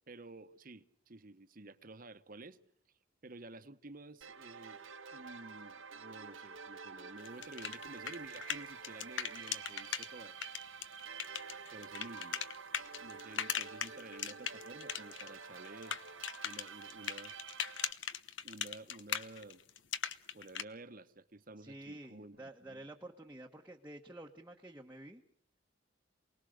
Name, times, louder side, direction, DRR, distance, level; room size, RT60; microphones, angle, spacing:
voice 1, 0.1-2.6 3.2-4.8 5.1-10.4 11.7-12.4 12.8-16.0 16.4-17.3 18.4-19.6 20.3-22.9, right 2 dB, 45° right, 1.2 m, -52 dB
sound 1, 4.2-17.9, right 5 dB, 80° right, 1.5 m, -49 dB
sound 2, 7.2-10.1 10.4-15.3 15.5-20.6, left 8 dB, 65° left, 1.1 m, -39 dB
voice 2, 21.6-25.2, right 1 dB, 10° right, 1.3 m, -50 dB
28.5 x 20.0 x 6.6 m
head